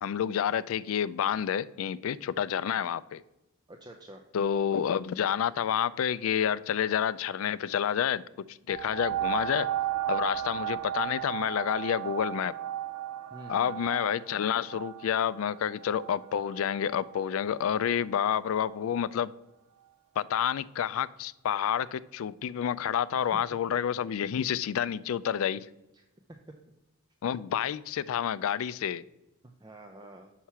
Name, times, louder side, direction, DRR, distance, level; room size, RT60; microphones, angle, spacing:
voice 1, 0.0-3.2 4.3-8.2 8.5-9.7 10.1-12.5 13.5-19.3 20.2-25.7 27.2-29.0, left 8 dB, 65° left, 17 dB, 0.3 m, -29 dB
voice 2, 3.7-4.2 13.3-13.7 23.2-23.4 25.9-26.1 29.4-30.3, right 1 dB, 20° right, 4 dB, 0.5 m, -48 dB
sound 1, 8.7-17.9 18.6-18.7, right 12 dB, 90° right, 0.5 m, -35 dB
6.3 x 5.7 x 5.7 m, 0.93 s
head